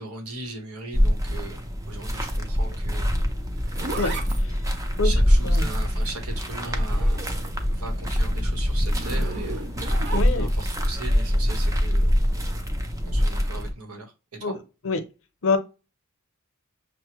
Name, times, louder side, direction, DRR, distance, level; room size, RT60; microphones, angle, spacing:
voice 1, 0.0-3.1 5.0-7.4 7.7-9.7 10.3-12.1 13.1-14.5, right 2 dB, 90° right, 1.1 m, -38 dB
sound 1, 0.9-13.7, equal, 15° right, 0.5 m, -24 dB
Zipper (clothing), 3.2-7.7 8.0-10.7 12.3-12.6, right 3 dB, 55° right, 0.7 m, -37 dB
voice 2, 10.1-10.5 14.4-14.5 14.8-15.0 15.4-15.6, left 3 dB, 65° left, 0.7 m, -24 dB
6.2 x 2.1 x 3.0 m
head